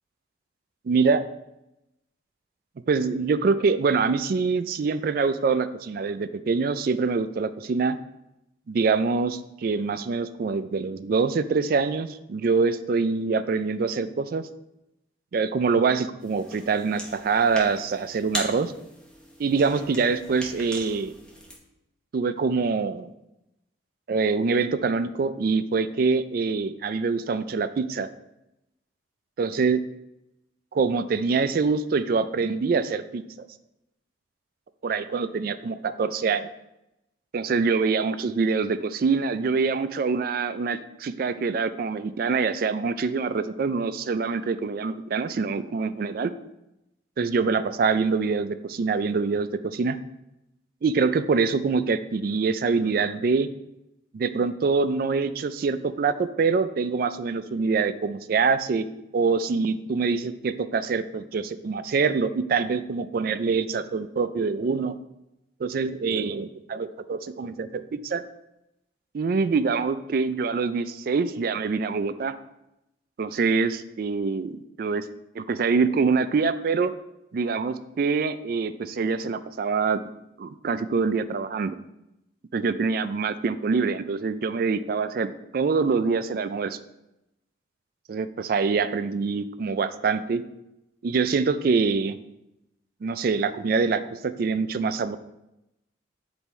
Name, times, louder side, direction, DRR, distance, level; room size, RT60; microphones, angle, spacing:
voice 1, 0.9-1.2 2.9-8.0 8.7-14.4 15.3-18.7 19.4-21.1 22.1-23.1 24.1-28.1 29.4-29.8 30.7-33.5 34.8-36.5 37.3-46.3 47.2-50.0 50.8-53.5 54.1-58.9 59.1-65.0 65.6-68.2 69.1-72.3 73.2-75.0 75.3-76.9 77.3-80.0 80.4-81.8 82.5-86.8 88.1-90.4 91.0-92.2 93.0-95.2, right 4 dB, 50° right, 12 dB, 0.3 m, -25 dB
sound 1, 16.2-21.6, equal, 5° left, 0.9 m, -39 dB
7.1 x 3.5 x 4.2 m, 0.88 s
head